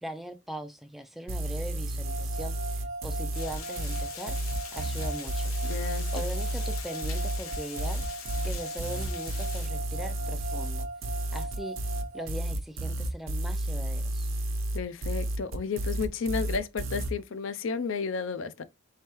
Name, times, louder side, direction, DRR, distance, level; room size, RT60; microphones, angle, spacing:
voice 1, 0.0-4.4 4.7-5.5 6.1-8.0 8.4-10.9 11.3-11.8 12.1-14.3, right 1 dB, ahead, 0.3 m, -40 dB
sound 1, 1.3-17.1, right 1 dB, 70° right, 0.8 m, -31 dB
sound 2, 2.0-12.3, right 2 dB, 35° right, 0.7 m, -40 dB
Water, 3.3-9.7, left 7 dB, 85° left, 0.9 m, -43 dB
voice 2, 5.6-6.1 14.7-18.6, left 5 dB, 65° left, 0.5 m, -32 dB
4.3 x 3.2 x 2.9 m
head